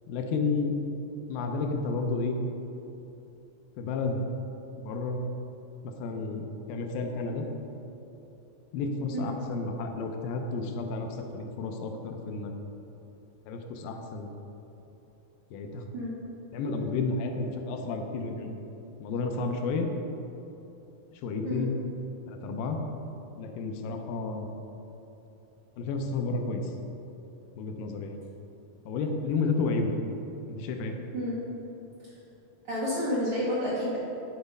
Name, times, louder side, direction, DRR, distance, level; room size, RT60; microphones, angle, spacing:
voice 1, 0.1-0.8 1.3-2.4 3.8-4.2 4.8-5.2 5.8-7.5 8.7-12.5 13.5-14.3 15.5-15.8 16.5-18.5 19.0-19.9 21.2-21.8 22.3-22.8 23.4-24.5 25.8-26.7 27.6-28.2 28.9-30.0 30.5-31.0, left 4 dB, 90° left, 4 dB, 2.4 m, -31 dB
voice 2, 32.7-34.0, equal, 60° right, -8 dB, 1.5 m, -30 dB
9.1 x 4.0 x 5.3 m, 3.0 s
omnidirectional pair, 3.9 m